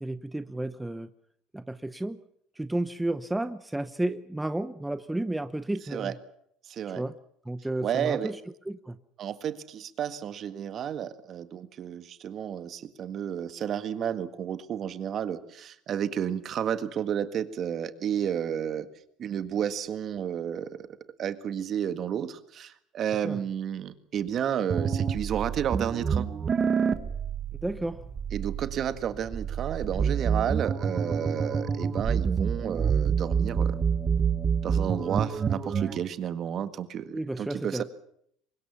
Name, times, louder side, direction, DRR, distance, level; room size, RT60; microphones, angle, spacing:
voice 1, 0.0-1.1 1.5-2.2 2.6-6.1 6.9-7.1 7.5-8.4 8.7-9.0 23.2-23.4 27.6-28.0 37.1-37.8, right 1 dB, 10° right, 0.8 m, -32 dB
voice 2, 6.7-7.0 7.8-8.3 9.2-18.9 19.2-20.9 21.2-26.3 28.3-33.8 34.6-37.8, right 9 dB, 50° right, 1.7 m, -31 dB
sound 1, 24.7-36.0, right 6 dB, 30° right, 1.6 m, -28 dB
24.0 x 20.5 x 7.1 m
supercardioid pair, 105°, 0 cm